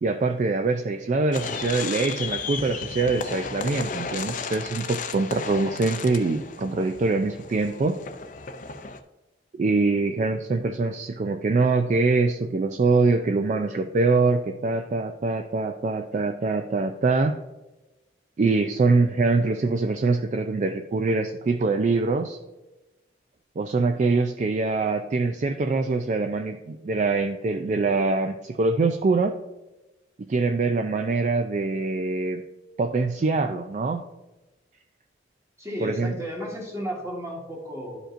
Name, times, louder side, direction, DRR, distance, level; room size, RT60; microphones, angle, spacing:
voice 1, 0.0-8.0 9.5-17.4 18.4-22.4 23.6-29.4 30.3-32.4 32.8-34.0 35.8-36.2, right 3 dB, 40° right, 6 dB, 0.3 m, -24 dB
sound 1, 1.3-9.0, left 5 dB, 45° left, 0.5 m, -34 dB
voice 2, 35.6-38.0, equal, 15° right, -2 dB, 1.5 m, -33 dB
11.5 x 5.1 x 2.5 m, 1.1 s
head